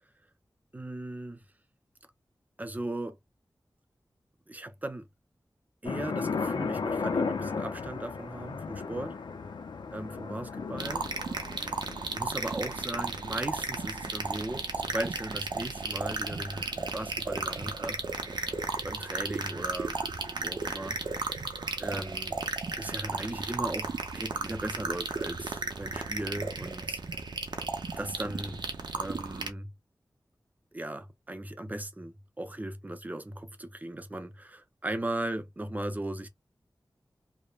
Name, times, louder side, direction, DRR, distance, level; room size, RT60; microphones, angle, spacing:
voice 1, 0.7-1.4 2.6-3.2 4.5-5.1 5.8-9.2 9.9-11.8 12.1-18.0 18.3-18.4 18.8-20.0 20.3-21.0 21.8-22.4 22.8-27.0 28.0-28.7 29.0-29.7 30.7-36.3, right 1 dB, 20° right, 0.5 m, -37 dB
sound 1, 5.8-19.7 20.0-20.1 20.4-21.2, left 5 dB, 90° left, 0.5 m, -37 dB
sound 2, 10.8-29.5, right 4 dB, 80° right, 0.6 m, -34 dB
3.0 x 2.1 x 2.3 m
wide cardioid pair, 90°, 8 cm